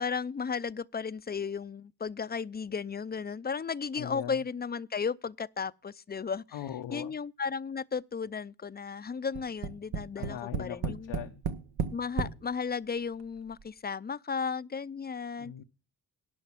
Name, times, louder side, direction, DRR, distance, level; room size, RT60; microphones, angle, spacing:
voice 1, 0.0-6.4 6.9-11.1 11.9-15.5, left 5 dB, 25° left, 0.4 m, -34 dB
voice 2, 4.0-4.4 6.5-7.1 10.2-11.4 15.4-15.6, left 11 dB, 90° left, 0.8 m, -40 dB
Tap, 9.3-12.4 13.2-13.3 13.6-13.7, right 6 dB, 85° right, 1.1 m, -33 dB
11.5 x 5.7 x 7.3 m
cardioid pair, 60°, 42 cm